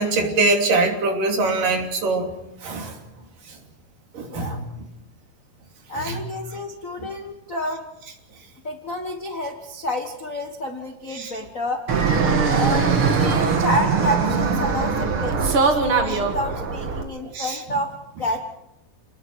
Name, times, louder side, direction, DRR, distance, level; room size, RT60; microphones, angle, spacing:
voice 1, 0.0-2.3 2.6-3.0 4.1-4.6 6.0-6.2 11.2-11.3 17.3-17.6, right 3 dB, 65° right, 2 dB, 4.5 m, -22 dB
voice 2, 4.3-4.6 5.9-7.8 8.6-11.8 12.2-18.4, left 1 dB, 55° left, 4 dB, 0.8 m, -29 dB
Fixed-wing aircraft airplane, 11.9-17.0, right 5 dB, 45° right, 2.2 m, -21 dB
29.5 x 20.0 x 4.8 m, 0.89 s
omnidirectional pair, 4.2 m